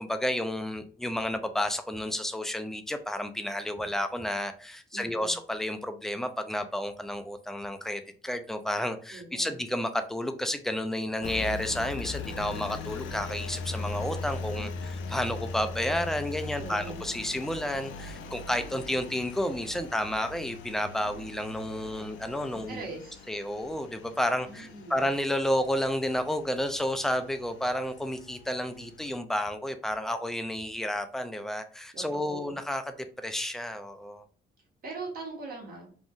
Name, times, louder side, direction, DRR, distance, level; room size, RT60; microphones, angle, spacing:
voice 1, 0.0-14.7 15.1-22.8 23.3-32.8 33.2-34.2, left 1 dB, ahead, 8 dB, 0.3 m, -31 dB
voice 2, 4.9-5.4 9.1-9.6 14.6-14.7 16.6-17.1 22.5-23.2 24.5-25.0 31.9-32.5 34.8-36.0, right 3 dB, 50° right, -1 dB, 1.2 m, -41 dB
Engine, 11.2-29.2, left 4 dB, 75° left, 0.4 m, -40 dB
2.6 x 2.1 x 3.5 m, 0.42 s
cardioid pair, 90°, 20 cm